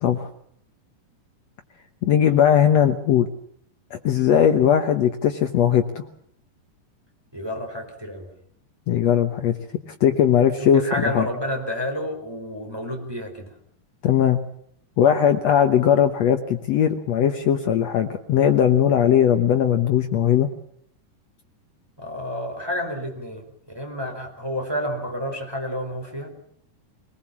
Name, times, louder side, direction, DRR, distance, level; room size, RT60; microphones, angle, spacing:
voice 1, 2.0-3.3 3.9-6.0 8.9-9.5 10.0-11.3 14.0-14.4 15.0-20.5, left 9 dB, 80° left, 7 dB, 1.5 m, -19 dB
voice 2, 7.3-8.3 10.6-13.5 22.0-23.4 23.7-26.3, left 1 dB, 5° right, 2 dB, 4.4 m, -30 dB
24.0 x 19.5 x 7.3 m, 0.65 s
omnidirectional pair, 4.6 m